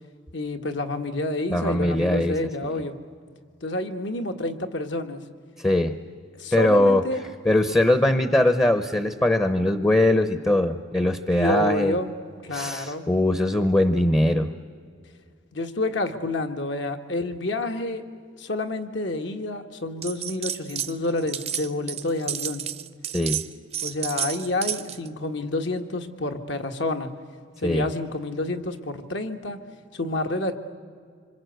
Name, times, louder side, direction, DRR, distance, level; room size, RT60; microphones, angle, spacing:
voice 1, 0.3-3.0 3.6-5.2 6.4-7.2 11.4-12.1 12.4-13.0 15.5-18.0 18.4-22.6 23.8-27.1 27.6-29.6 29.9-30.5, left 2 dB, 70° left, 6 dB, 1.6 m, -28 dB
voice 2, 1.5-2.7 5.6-6.0 6.5-7.0 7.4-11.9 12.5-14.5 23.1-23.4 27.6-27.9, left 1 dB, 15° left, 10 dB, 0.7 m, -21 dB
sound 1, 20.0-20.9 21.2-25.1, right 10 dB, 30° right, 0.6 m, -31 dB
26.5 x 25.5 x 8.0 m, 2.1 s
head